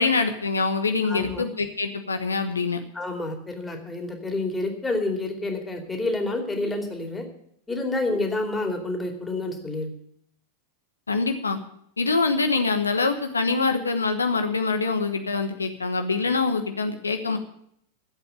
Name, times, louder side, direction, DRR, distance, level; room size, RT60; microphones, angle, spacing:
voice 1, 0.0-2.8 11.1-11.6 12.0-17.4, left 4 dB, 75° left, 7 dB, 1.1 m, -24 dB
voice 2, 1.1-1.4 2.9-7.2 7.7-9.9, left 2 dB, 10° left, 3 dB, 2.7 m, -28 dB
12.5 x 8.0 x 8.9 m, 0.69 s
figure-of-eight pair, 90°, 0 cm